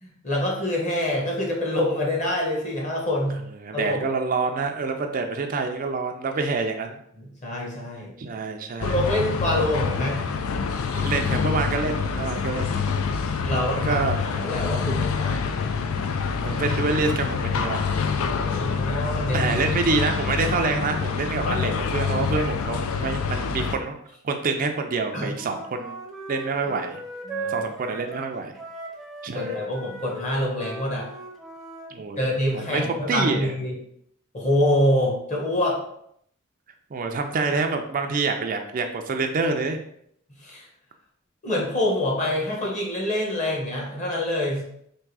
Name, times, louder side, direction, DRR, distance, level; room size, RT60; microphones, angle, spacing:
voice 1, 0.0-3.5 3.7-4.0 7.2-8.3 8.8-10.2 13.4-15.7 18.2-19.8 25.1-25.4 27.3-27.6 29.3-31.1 32.2-33.7 34.3-35.8 40.4-40.6 41.4-44.6, left 1 dB, 35° left, -2 dB, 1.2 m, -26 dB
voice 2, 3.6-7.0 8.2-9.0 10.9-12.7 13.8-14.1 16.2-17.9 19.3-24.0 24.2-26.0 26.3-27.0 27.5-28.6 29.2-29.6 31.9-32.2 32.5-33.5 36.9-39.8, right 4 dB, 40° right, 5 dB, 0.4 m, -27 dB
sound 1, 8.8-23.7, left 5 dB, 80° left, 0.4 m, -26 dB
Wind instrument woodwind instrument, 25.3-31.9, right 1 dB, ahead, 0.7 m, -37 dB
3.5 x 2.7 x 4.6 m, 0.71 s
head